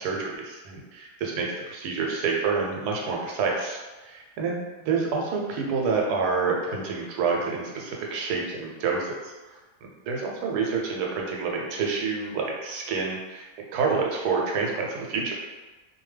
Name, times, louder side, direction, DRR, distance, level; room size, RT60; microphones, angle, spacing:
voice 1, 0.0-13.5 13.7-15.3, right 4 dB, 85° right, -1 dB, 1.1 m, -28 dB
2.6 x 2.2 x 3.2 m, 1.2 s
omnidirectional pair, 1.7 m